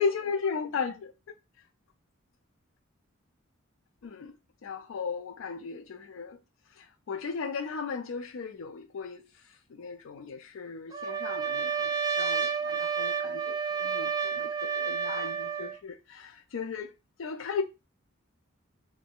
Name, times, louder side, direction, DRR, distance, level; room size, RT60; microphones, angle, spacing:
voice 1, 0.0-1.3 4.0-4.4 4.6-6.4 6.7-17.6, left 5 dB, 80° left, 0.4 m, -36 dB
Trumpet, 10.9-15.8, right 6 dB, 20° right, 0.4 m, -30 dB
3.8 x 2.6 x 3.6 m
head